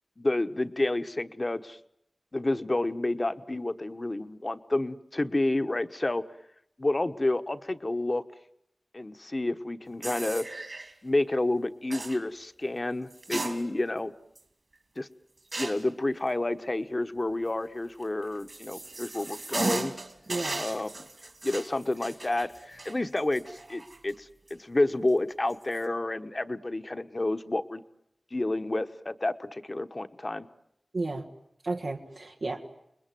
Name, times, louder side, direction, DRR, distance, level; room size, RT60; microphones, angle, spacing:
voice 1, 0.2-1.8 2.3-6.2 6.8-8.2 8.9-10.4 11.0-14.1 15.0-15.1 15.6-19.9 20.6-21.1 21.4-27.8 28.3-30.5, left 2 dB, 35° left, 10 dB, 1.2 m, -30 dB
sound 1, 10.0-10.9 11.9-12.2 13.1-14.0 14.4-14.5 15.5-15.9 18.0-24.1 24.5-24.6 25.5-25.8, right 2 dB, 55° right, 3.0 m, -36 dB
voice 2, 20.3-20.6 30.9-31.3 31.6-32.8, right 2 dB, 80° right, 1 dB, 1.7 m, -33 dB
29.0 x 21.0 x 9.3 m, 0.79 s
wide cardioid pair, 70°, 0 cm